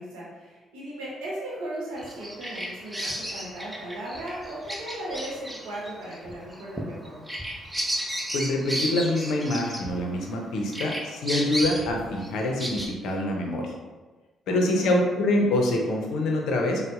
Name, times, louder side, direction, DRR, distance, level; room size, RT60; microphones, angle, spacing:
voice 1, 0.0-7.2 14.4-14.9, right 1 dB, 80° right, -6 dB, 0.9 m, -37 dB
Bird vocalization bird call bird song, 2.0-10.4 10.7-12.9, equal, 10° right, 0.7 m, -33 dB
voice 2, 8.3-13.7 14.5-16.8, left 1 dB, 70° left, 1 dB, 0.5 m, -25 dB
3.9 x 2.0 x 2.3 m, 1.3 s
hypercardioid pair, 45°, 0 cm